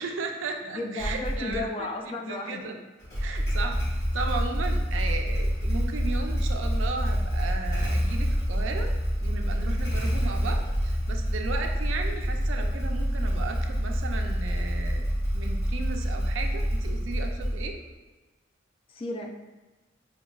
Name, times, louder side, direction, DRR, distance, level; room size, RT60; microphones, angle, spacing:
voice 1, 0.0-1.7 2.1-2.7 3.2-8.9 9.2-15.0 15.3-17.7, right 4 dB, 80° right, 3 dB, 0.4 m, -35 dB
voice 2, 0.6-2.8 18.9-19.3, left 2 dB, 30° left, 2 dB, 0.3 m, -34 dB
Motorcycle / Engine starting, 1.0-1.6 3.0-17.9, equal, 60° left, 1.4 m, -27 dB
5.7 x 2.3 x 2.3 m, 1.2 s
head